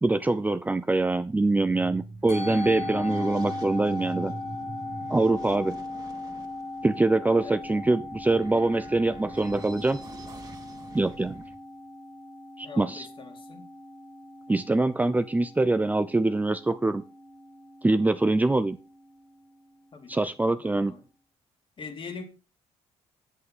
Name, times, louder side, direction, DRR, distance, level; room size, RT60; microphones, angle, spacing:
voice 1, 0.0-4.3 5.1-5.8 6.8-10.0 10.9-11.4 12.6-13.1 14.5-17.0 17.8-18.8 20.1-20.9, right 2 dB, 15° right, 0.6 m, -24 dB
sound 1, 1.1-11.5, right 3 dB, 30° right, 2.4 m, -43 dB
Musical instrument, 2.3-20.8, left 2 dB, 65° left, 4.1 m, -39 dB
voice 2, 7.4-7.9 12.6-13.7 19.9-20.3 20.6-21.0 21.8-22.2, left 5 dB, 45° left, 2.6 m, -43 dB
8.4 x 7.8 x 5.5 m
cardioid pair, 85°, 12 cm